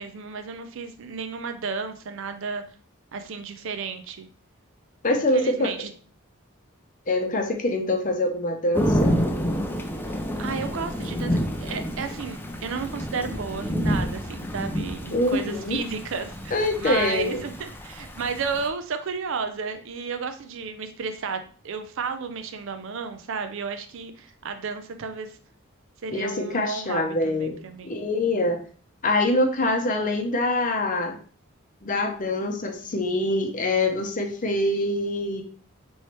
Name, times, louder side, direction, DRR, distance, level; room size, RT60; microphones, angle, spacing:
voice 1, 0.0-2.6 3.1-4.3 5.3-5.9 10.1-25.3 26.0-28.0, right 5 dB, 65° right, 8 dB, 0.5 m, -33 dB
voice 2, 5.0-5.7 7.1-9.2 15.1-15.8 16.5-17.4 26.1-27.5 27.8-28.6 29.0-31.2 31.8-35.4, left 2 dB, 40° left, 4 dB, 0.7 m, -24 dB
Thunder / Rain, 8.7-18.7, equal, 10° left, 0.4 m, -29 dB
4.4 x 3.1 x 3.0 m, 0.42 s
head